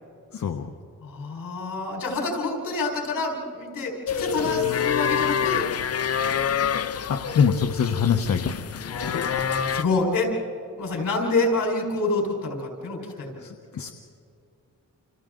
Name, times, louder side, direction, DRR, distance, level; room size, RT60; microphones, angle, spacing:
voice 1, 0.3-0.7 7.1-8.5 13.4-13.9, left 6 dB, 65° left, 4 dB, 1.0 m, -24 dB
voice 2, 1.0-5.6 8.9-10.3 10.8-13.3, left 3 dB, 85° left, 1 dB, 4.6 m, -27 dB
sound 1, 4.1-9.8, left 8 dB, 50° left, 0.6 m, -26 dB
29.5 x 27.5 x 3.8 m, 2.5 s
wide cardioid pair, 110°, 32 cm